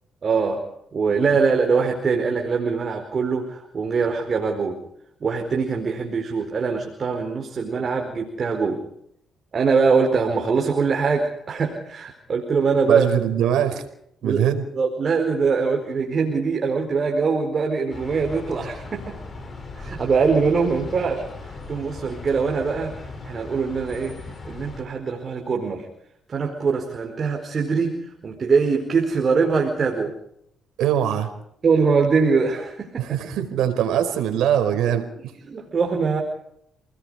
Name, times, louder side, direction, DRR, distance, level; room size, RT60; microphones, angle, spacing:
voice 1, 0.2-0.6 0.9-4.8 5.2-8.8 9.5-13.0 14.2-14.4 14.7-19.2 19.8-23.0 23.2-25.9 26.3-30.1 31.6-33.1 35.4-36.2, right 5 dB, 45° right, 2 dB, 4.6 m, -23 dB
voice 2, 12.9-13.8 14.2-14.6 30.8-31.3 33.0-35.1, right 10 dB, 85° right, 7 dB, 4.9 m, -22 dB
sound 1, 17.9-24.8, left 3 dB, 35° left, 7.1 m, -38 dB
29.5 x 20.0 x 5.0 m, 0.72 s
cardioid pair, 90°, 0 cm